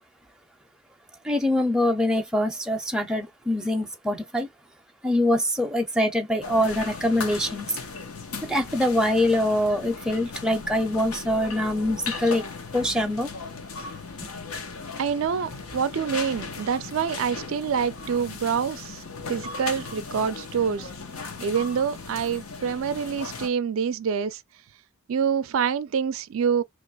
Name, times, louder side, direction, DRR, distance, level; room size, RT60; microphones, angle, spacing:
voice 1, 1.2-4.5 5.0-7.8 8.4-12.4 12.7-13.3 14.2-14.3, left 1 dB, 5° right, 0.5 m, -24 dB
sound 1, 6.4-23.5, left 4 dB, 80° left, 0.9 m, -37 dB
voice 2, 15.0-19.0 19.3-20.9 21.4-24.4 25.1-26.6, right 7 dB, 65° right, 0.4 m, -26 dB
3.0 x 2.4 x 4.0 m
head